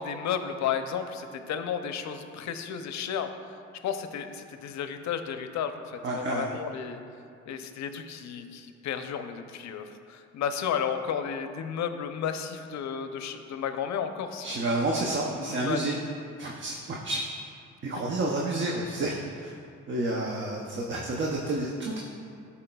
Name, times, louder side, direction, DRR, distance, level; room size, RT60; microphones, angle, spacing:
voice 1, 0.0-3.3 3.8-7.0 7.5-14.5 15.3-15.9, left 7 dB, 65° left, 8 dB, 0.5 m, -33 dB
voice 2, 6.0-6.5 14.4-16.0 16.4-17.2 17.8-19.5 19.9-22.0, right 2 dB, 40° right, -2 dB, 0.6 m, -30 dB
11.5 x 4.2 x 2.3 m, 2.4 s
cardioid pair, 90°, 30 cm